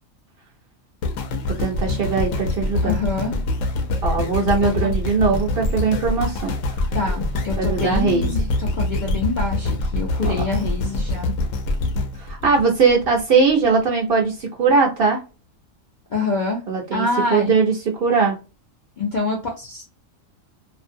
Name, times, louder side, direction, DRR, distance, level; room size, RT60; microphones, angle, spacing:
sound 1, 1.0-13.2 13.8-13.9, left 2 dB, 75° left, 0.9 m, -25 dB
voice 1, 1.6-2.9 4.0-6.5 7.6-8.3 12.2-15.2 16.7-17.7 18.0-18.4, right 5 dB, 55° right, 0 dB, 0.7 m, -20 dB
voice 2, 2.8-3.3 4.8-4.9 6.9-11.4 16.1-16.6 16.9-17.5 19.0-19.8, left 3 dB, 55° left, -1 dB, 0.5 m, -26 dB
2.5 x 2.0 x 2.5 m, 0.31 s
omnidirectional pair, 1.4 m